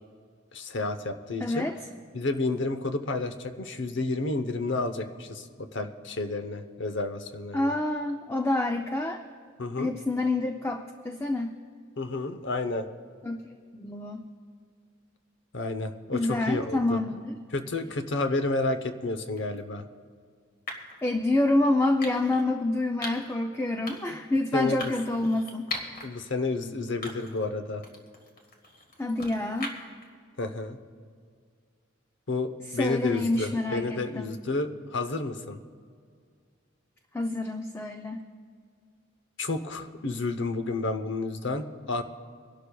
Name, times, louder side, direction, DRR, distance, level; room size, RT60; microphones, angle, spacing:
voice 1, 0.5-1.7 2.1-7.7 9.6-9.9 12.0-12.9 15.5-17.0 17.5-19.8 24.1-24.2 24.5-24.9 26.0-27.8 30.4-30.8 32.3-35.6 39.4-42.0, left 3 dB, 60° left, 9 dB, 0.8 m, -30 dB
voice 2, 1.4-1.7 7.5-9.2 9.8-11.6 13.2-13.4 13.7-14.3 16.1-17.4 21.0-25.7 29.0-29.7 32.8-34.4 37.1-38.2, left 2 dB, 15° left, 4 dB, 0.4 m, -27 dB
sound 1, 19.4-19.6 20.7-21.0 22.0-22.4 23.0-23.3 23.9-24.2 24.8-26.1 26.5-26.6 27.0-27.5 27.8-30.0, left 2 dB, 45° left, 1.7 m, -39 dB
25.5 x 11.5 x 2.3 m, 2.1 s
head